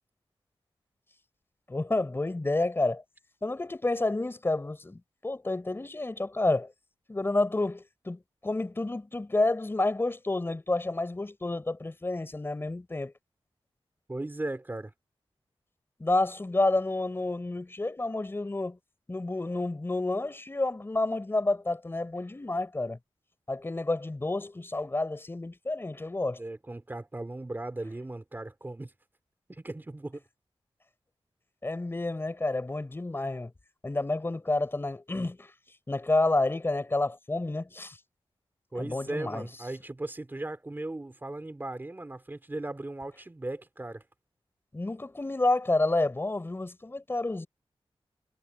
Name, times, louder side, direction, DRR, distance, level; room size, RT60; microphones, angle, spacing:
voice 1, 1.7-3.0 3.4-6.7 7.1-13.1 16.0-18.8 19.1-23.0 23.5-26.4 31.6-33.5 33.8-35.5 35.9-38.0 38.7-39.5 44.7-47.5, left 2 dB, 25° left, 5.1 m, -29 dB
voice 2, 14.1-14.9 26.4-28.9 29.5-30.2 38.7-44.0, right 2 dB, 20° right, 3.6 m, -37 dB
wide cardioid pair, 155°, 10 cm